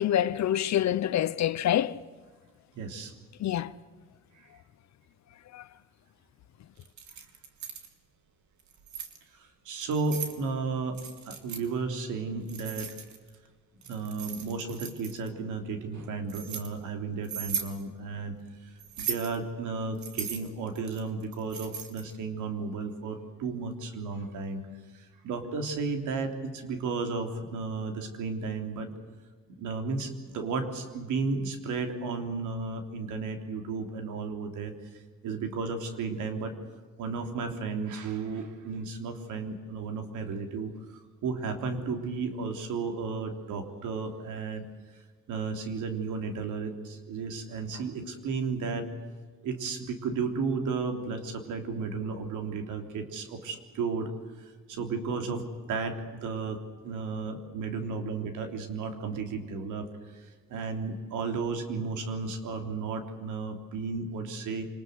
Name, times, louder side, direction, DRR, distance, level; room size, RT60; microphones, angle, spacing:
voice 1, 0.0-1.9 3.4-3.7 5.5-5.6, left 11 dB, 65° left, 0.9 m, -26 dB
voice 2, 2.7-3.1 4.3-4.5 9.4-11.0 11.3-12.9 13.9-18.3 19.0-24.6 24.9-28.9 29.6-34.7 35.2-36.5 37.0-40.7 41.2-44.6 45.3-48.9 49.4-54.1 54.7-56.6 56.8-59.9 60.1-64.7, right 4 dB, 85° right, 3.4 m, -33 dB
Keys jangling, 6.8-7.9 8.6-9.2 9.8-10.4 10.9-11.6 12.5-13.3 13.8-15.3 15.9-16.7 17.2-17.7 18.8-19.4 20.0-22.1, right 7 dB, 70° right, 3.1 m, -37 dB
26.0 x 20.5 x 8.0 m
cardioid pair, 90°, 30 cm